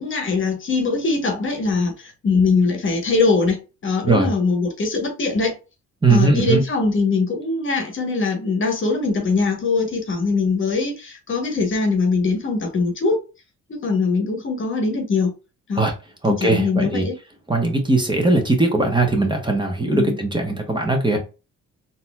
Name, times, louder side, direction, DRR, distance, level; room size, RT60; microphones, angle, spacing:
voice 1, 0.0-5.6 6.1-13.2 13.7-15.3 15.7-15.9 16.3-17.1 19.9-20.2, left 4 dB, 40° left, 1.1 m, -21 dB
voice 2, 6.0-6.6 15.8-15.9 16.2-17.1 17.5-21.2, right 2 dB, 15° right, 1.1 m, -19 dB
4.0 x 2.8 x 2.3 m
cardioid pair, 90°, 30 cm